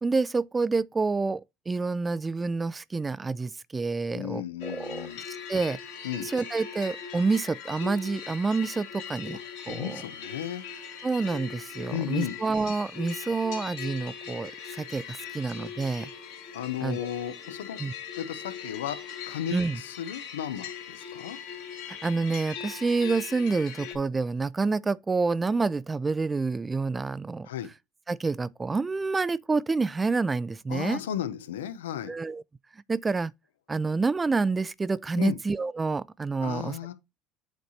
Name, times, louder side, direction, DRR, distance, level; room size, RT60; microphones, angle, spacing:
voice 1, 0.0-5.8 6.2-9.4 9.7-10.0 11.0-16.1 16.8-17.1 17.8-17.9 19.5-19.8 21.9-27.5 28.1-31.0 32.1-32.4 32.9-33.3 33.7-36.9, right 4 dB, 20° right, 0.4 m, -28 dB
voice 2, 4.1-5.2 6.0-6.3 9.3-9.4 9.7-10.6 11.9-12.3 16.5-17.8 18.1-19.0 19.3-21.4 27.5-27.7 30.7-32.1 35.2-35.4 36.4-36.9, left 10 dB, 90° left, 0.8 m, -34 dB
sound 1, 4.6-24.0, left 7 dB, 70° left, 2.3 m, -40 dB
8.1 x 3.2 x 4.2 m
hypercardioid pair, 80°, 0 cm